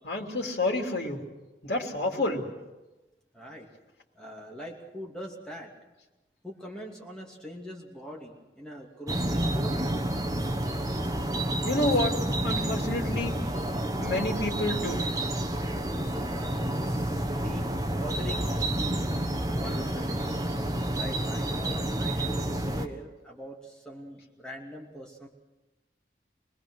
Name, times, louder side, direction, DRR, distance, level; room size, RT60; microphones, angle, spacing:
voice 1, 0.0-1.3 1.6-2.5 11.6-12.2 12.4-13.4 14.0-15.1 19.6-19.8, left 2 dB, 70° left, 1 dB, 3.1 m, -29 dB
voice 2, 3.3-3.7 4.1-5.7 6.4-9.7 16.2-19.1 19.5-20.3 20.9-25.3, equal, 5° left, -2 dB, 2.8 m, -42 dB
sound 1, 9.1-22.9, right 1 dB, 20° right, 1.2 m, -29 dB
26.0 x 20.0 x 6.4 m, 1.1 s
head